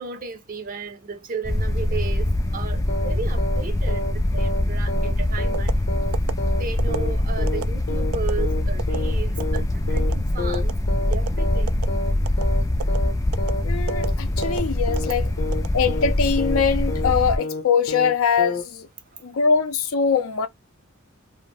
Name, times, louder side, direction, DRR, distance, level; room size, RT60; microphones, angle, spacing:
voice 1, 0.0-5.8 6.5-11.8 15.0-15.1, right 4 dB, 40° right, 0.6 m, -34 dB
sound 1, 1.4-17.4, left 1 dB, 15° left, 0.3 m, -23 dB
sound 2, 2.9-3.1 3.4-3.6 3.9-4.1 4.4-4.6 4.9-5.1 5.4-5.6 5.9-6.1 6.4-6.6 6.9-7.1 7.4-7.6 7.9-8.1 8.4-8.6 8.9-9.1 9.4-9.6 9.9-10.1 10.4-10.6 10.9-11.1 11.4-11.6 11.9-12.1 12.4-12.6 12.9-13.1 13.4-13.6 13.9-14.1 14.4-14.6 14.9-15.1 15.4-15.6 15.9-16.1 16.4-16.6 16.9-17.1 17.4-17.6 17.9-18.1 18.4-18.6, left 2 dB, 55° left, 0.8 m, -30 dB
sound 3, 5.5-5.8 6.1-6.3 6.8-7.0 7.5-7.6 8.1-8.3 8.8-9.0 9.4-9.6 10.0-10.2 10.5-10.7 11.1-11.3 11.7-11.9 12.3-12.5 12.8-13.0 13.3-13.5 13.9-14.1 14.4-14.6 15.0-15.1 15.5-16.2 16.6-16.9, right 7 dB, 85° right, 0.3 m, -31 dB
voice 2, 13.6-15.3 15.7-18.9 19.2-20.5, left 6 dB, 85° left, 0.5 m, -22 dB
2.4 x 2.0 x 3.2 m
head